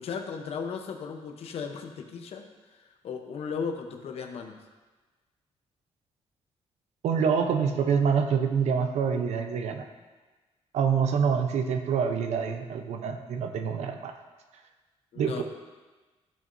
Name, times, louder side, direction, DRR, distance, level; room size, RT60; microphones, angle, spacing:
voice 1, 0.0-2.5 2.7-4.6 15.1-15.4, left 6 dB, 65° left, 5 dB, 0.9 m, -36 dB
voice 2, 7.0-9.9 10.7-14.1 15.2-15.4, right 6 dB, 85° right, 6 dB, 0.8 m, -26 dB
13.5 x 6.1 x 2.7 m, 1.3 s
wide cardioid pair, 170°, 11 cm